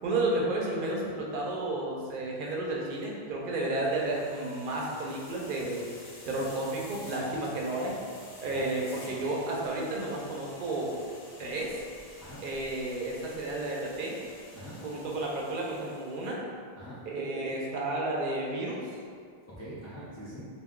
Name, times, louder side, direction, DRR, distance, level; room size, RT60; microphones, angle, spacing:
voice 1, 0.0-5.9 6.2-8.0 8.4-11.0 11.4-11.8 12.4-14.2 14.8-16.4 17.1-18.8, right 2 dB, 60° right, -3 dB, 0.7 m, -32 dB
sound 1, 3.6-16.3, left 1 dB, 60° left, 0.7 m, -50 dB
voice 2, 14.5-14.8 16.8-17.0 19.5-20.5, equal, 25° left, -10 dB, 0.4 m, -44 dB
2.4 x 2.2 x 3.6 m, 2.2 s
omnidirectional pair, 1.1 m